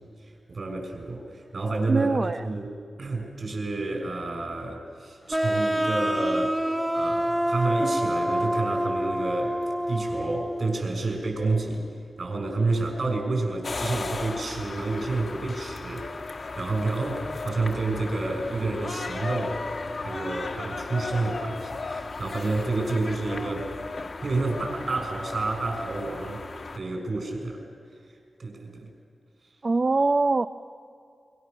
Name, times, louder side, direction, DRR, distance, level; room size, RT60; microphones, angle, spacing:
voice 1, 0.2-2.1 2.4-2.7 3.0-9.6 9.9-11.9 12.2-16.1 16.6-19.6 19.9-23.7 24.2-26.4 26.7-27.6 28.4-28.9, right 3 dB, 60° right, 2 dB, 6.3 m, -29 dB
voice 2, 1.9-2.6 29.6-30.5, right 3 dB, 40° right, 10 dB, 0.5 m, -23 dB
sound 1, 5.3-10.8, equal, 10° right, 0.9 m, -27 dB
sound 2, 13.6-26.8, left 3 dB, 55° left, 1.5 m, -35 dB
25.5 x 24.0 x 6.8 m, 2.4 s
cardioid pair, 75°, 0 cm